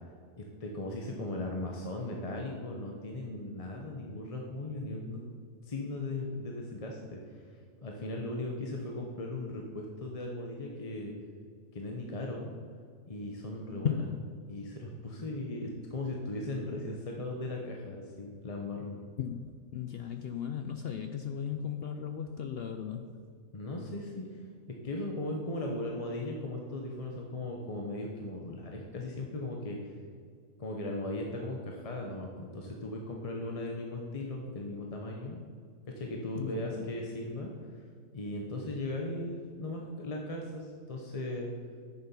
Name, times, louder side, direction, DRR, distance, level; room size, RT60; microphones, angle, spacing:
voice 1, 0.4-5.2 5.6-7.5 7.8-11.1 11.7-12.5 13.1-14.0 14.5-19.0 23.5-24.4 24.7-29.9 30.6-35.4 36.0-37.5 38.1-41.5, left 2 dB, 30° left, 0 dB, 0.8 m, -38 dB
voice 2, 13.8-14.2 19.2-19.5 19.7-23.2 36.3-36.9, left 8 dB, 65° left, 6 dB, 0.6 m, -36 dB
9.7 x 7.0 x 5.5 m, 2.2 s
omnidirectional pair, 1.5 m